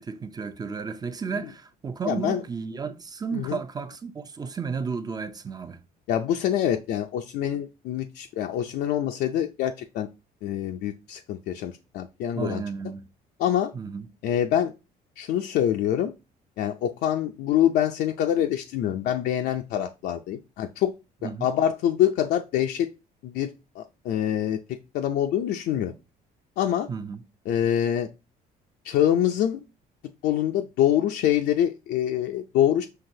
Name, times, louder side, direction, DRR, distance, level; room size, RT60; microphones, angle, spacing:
voice 1, 0.0-5.8 12.4-13.0 13.7-14.1 21.2-21.5 26.9-27.2, right 5 dB, 25° right, 0.5 m, -33 dB
voice 2, 2.0-2.4 3.3-3.6 6.1-10.1 10.4-12.6 13.4-13.7 14.2-14.7 15.2-16.1 16.6-20.9 21.2-22.9 23.2-23.5 23.8-25.9 26.6-26.9 27.5-28.1 28.8-29.6 30.2-32.9, left 10 dB, 75° left, 0.5 m, -25 dB
5.8 x 2.9 x 2.7 m
cardioid pair, 110°, 17 cm